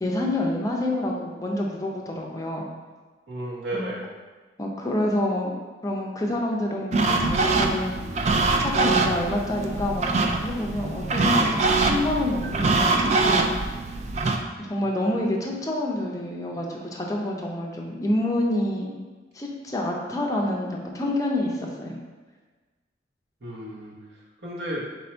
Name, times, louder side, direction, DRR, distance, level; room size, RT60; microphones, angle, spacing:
voice 1, 0.0-2.7 3.7-3.9 4.6-5.5 5.8-7.9 8.6-10.1 10.4-13.4 14.6-18.9 19.3-22.0, left 1 dB, 20° left, -1 dB, 0.5 m, -27 dB
voice 2, 3.3-4.0 14.9-15.2 23.4-23.9 24.4-24.8, right 1 dB, 60° right, -3 dB, 1.0 m, -33 dB
sound 1, 6.9-14.4, right 3 dB, 35° right, 0.3 m, -23 dB
4.2 x 2.7 x 4.3 m, 1.3 s
head